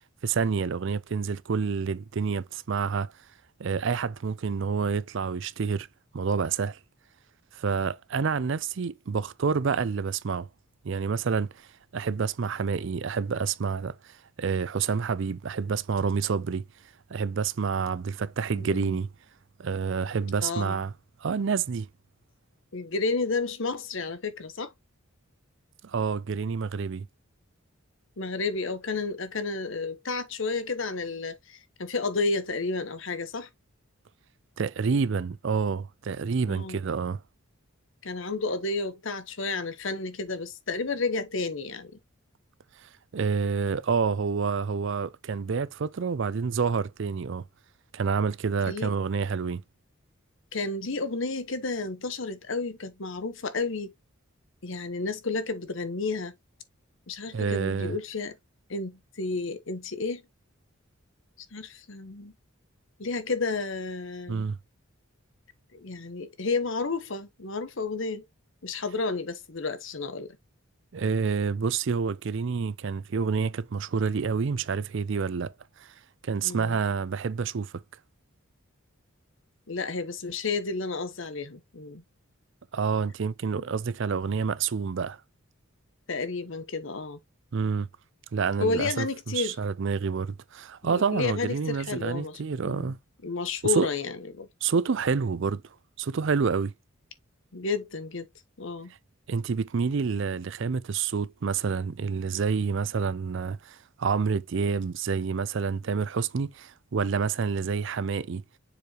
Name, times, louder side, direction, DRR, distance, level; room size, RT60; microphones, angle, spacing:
voice 1, 0.2-3.1 3.6-5.9 6.1-6.8 7.5-10.5 10.8-11.7 11.9-16.6 17.1-19.1 19.6-20.9 21.2-21.9 25.8-27.1 34.6-37.2 42.8-47.4 47.9-49.6 57.3-58.0 64.3-64.6 70.9-75.5 75.8-75.9 76.2-77.7 82.7-85.2 87.5-87.9 88.3-93.0 93.7-93.9 94.6-96.7 99.3-108.4, right 5 dB, 60° right, 0.4 m, -28 dB
voice 2, 18.5-19.0 20.4-20.8 22.7-24.7 28.2-33.5 36.5-36.8 38.0-41.9 48.7-48.9 50.5-53.9 54.6-56.3 57.1-58.4 58.7-60.2 61.5-62.3 63.0-64.4 65.7-68.2 68.6-70.4 76.4-76.8 79.7-82.0 83.6-83.7 86.1-87.2 88.6-89.6 90.8-92.4 92.7-92.9 93.2-94.5 97.5-98.3 98.6-98.9, left 3 dB, 60° left, 1.0 m, -31 dB
7.0 x 4.8 x 2.9 m
head